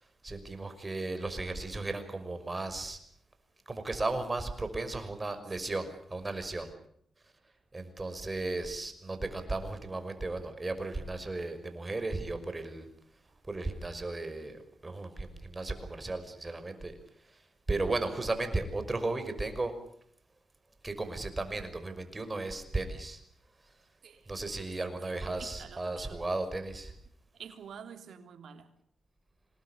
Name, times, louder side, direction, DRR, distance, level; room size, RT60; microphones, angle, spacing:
voice 1, 0.2-3.0 3.7-6.7 7.7-12.9 13.5-16.9 17.3-17.4 17.7-19.7 20.8-23.2 24.3-26.9, right 2 dB, 25° right, 5.8 m, -35 dB
voice 2, 24.0-26.2 27.3-28.7, right 7 dB, 75° right, 3.4 m, -49 dB
27.0 x 20.0 x 8.4 m
cardioid pair, 70°, 0 cm